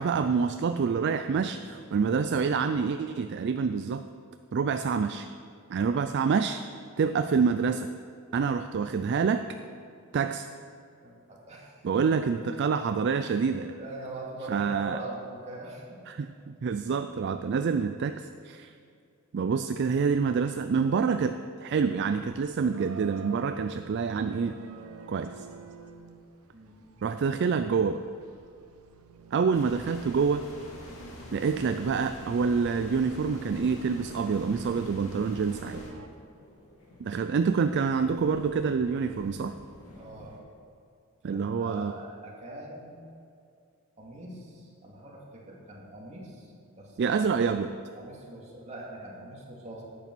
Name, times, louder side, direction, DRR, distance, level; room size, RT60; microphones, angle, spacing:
voice 1, 0.0-4.0 4.5-5.3 5.7-6.6 7.0-7.9 8.3-9.5 10.1-10.5 11.8-13.7 14.5-15.0 16.1-18.7 19.3-24.6 25.1-25.5 27.0-28.0 29.3-30.4 31.3-35.8 37.0-39.6 41.2-42.0 47.0-47.7, right 5 dB, 50° right, 9 dB, 0.3 m, -27 dB
voice 2, 1.4-1.7 11.0-12.1 13.4-16.0 26.5-26.8 39.9-40.4 41.3-42.9 44.0-47.3 47.9-49.8, right 2 dB, 30° right, -3 dB, 2.2 m, -43 dB
sound 1, 21.9-36.1, right 3 dB, 85° right, 0.8 m, -49 dB
sound 2, 29.5-35.9, equal, 65° left, 2.2 m, -44 dB
sound 3, 34.2-40.4, left 2 dB, 85° left, 2.4 m, -52 dB
11.0 x 8.4 x 6.1 m, 2.4 s
head